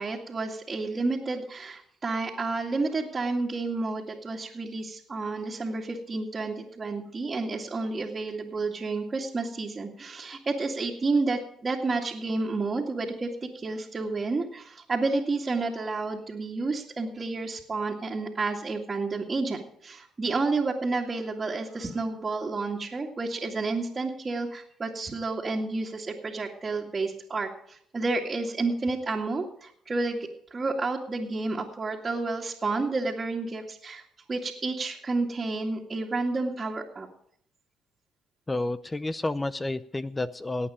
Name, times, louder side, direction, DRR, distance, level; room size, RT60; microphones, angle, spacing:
voice 1, 0.0-30.2 30.5-34.0 34.3-37.1, right 3 dB, 30° right, -4 dB, 2.3 m, -30 dB
voice 2, 38.5-40.7, left 2 dB, 20° left, 15 dB, 0.6 m, -30 dB
18.0 x 8.7 x 5.1 m, 0.65 s
supercardioid pair, 65°, 0 cm